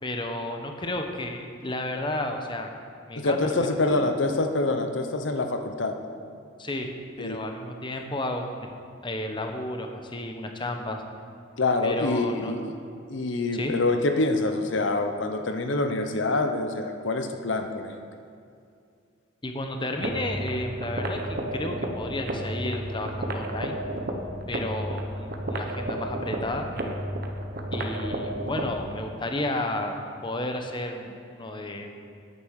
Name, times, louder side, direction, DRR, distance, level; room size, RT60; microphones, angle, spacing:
voice 1, 0.0-2.7 3.1-3.6 3.8-4.1 6.6-6.9 7.2-8.7 9.0-11.0 11.8-12.5 13.5-13.7 19.4-23.8 24.5-26.7 27.7-30.0 30.2-31.9, left 1 dB, 25° left, 4 dB, 0.9 m, -32 dB
voice 2, 3.2-6.0 7.2-7.4 11.6-12.8 13.1-17.9, left 2 dB, 85° left, 6 dB, 0.8 m, -26 dB
sound 1, 20.0-29.0, right 1 dB, 55° right, 1.1 m, -32 dB
9.6 x 9.5 x 6.5 m, 2.4 s
head